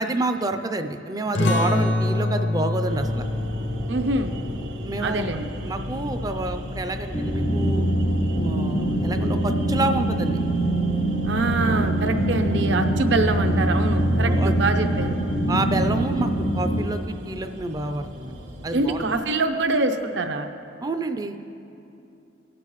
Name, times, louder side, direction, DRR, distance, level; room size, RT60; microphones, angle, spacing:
voice 1, 0.0-3.2 4.8-5.2 5.6-7.9 8.4-10.4 14.2-14.5 15.5-18.4 18.6-19.0 20.8-21.4, right 2 dB, 20° right, 8 dB, 0.4 m, -28 dB
sound 1, 1.3-6.5, left 2 dB, 65° left, 0.7 m, -27 dB
sound 2, 2.9-19.2, equal, 90° right, 1.1 m, -36 dB
voice 2, 3.9-4.3 5.0-5.5 11.2-15.2 18.7-20.5, right 2 dB, 65° right, 6 dB, 0.7 m, -25 dB
sound 3, 7.1-16.9, right 1 dB, 85° left, 1.3 m, -23 dB
19.0 x 7.6 x 3.1 m, 2.8 s
head